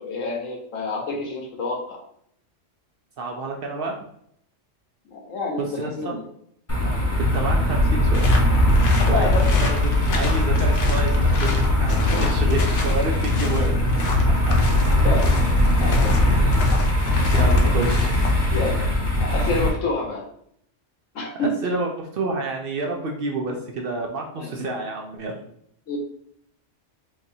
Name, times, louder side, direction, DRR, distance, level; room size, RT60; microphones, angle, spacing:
voice 1, 0.0-2.0 5.1-6.2 6.8-7.0 9.1-9.4 12.1-12.3 15.0-15.3 15.8-16.4 18.5-18.9 19.2-20.2 21.1-21.5 24.4-24.5 25.9-26.0, left 3 dB, 85° left, 0 dB, 1.3 m, -28 dB
voice 2, 3.2-4.0 5.6-6.1 7.3-8.3 9.1-9.3 9.6-13.8 14.5-14.6 16.1-16.2 17.3-18.1 21.4-25.4, right 2 dB, 60° right, 1 dB, 0.7 m, -29 dB
sound 1, 6.7-19.7, left 1 dB, 15° left, 0.8 m, -20 dB
sound 2, 8.1-18.4, left 3 dB, 65° left, 1.0 m, -33 dB
4.5 x 2.5 x 2.7 m, 0.69 s
omnidirectional pair, 1.3 m